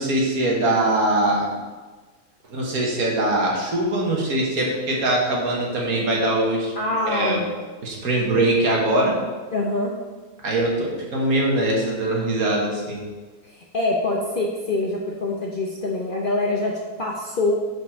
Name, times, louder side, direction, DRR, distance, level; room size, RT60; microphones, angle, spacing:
voice 1, 0.0-1.5 2.5-7.4 7.8-9.2 10.4-13.0, right 1 dB, 70° right, -2 dB, 1.8 m, -22 dB
voice 2, 6.8-7.5 9.5-9.9 13.4-17.5, left 2 dB, 50° left, -2 dB, 0.7 m, -25 dB
6.3 x 5.1 x 4.4 m, 1.3 s
omnidirectional pair, 1.6 m